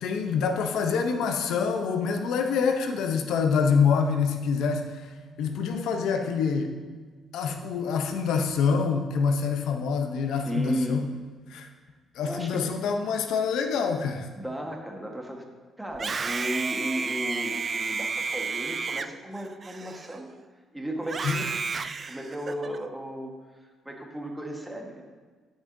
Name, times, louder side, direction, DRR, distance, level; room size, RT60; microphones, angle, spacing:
voice 1, 0.0-4.9 5.4-6.7 7.3-11.1 11.5-11.7 12.2-14.3 21.2-21.5, left 5 dB, 85° left, 5 dB, 0.6 m, -26 dB
voice 2, 10.4-11.0 12.2-12.6 14.3-15.4 15.8-20.3 20.7-21.5 22.1-23.3 23.8-25.0, equal, 10° right, 1 dB, 1.3 m, -34 dB
Screaming, 15.9-20.4 21.0-22.8, right 4 dB, 40° right, 0.3 m, -32 dB
11.5 x 6.1 x 2.6 m, 1.5 s
cardioid pair, 90°, 0 cm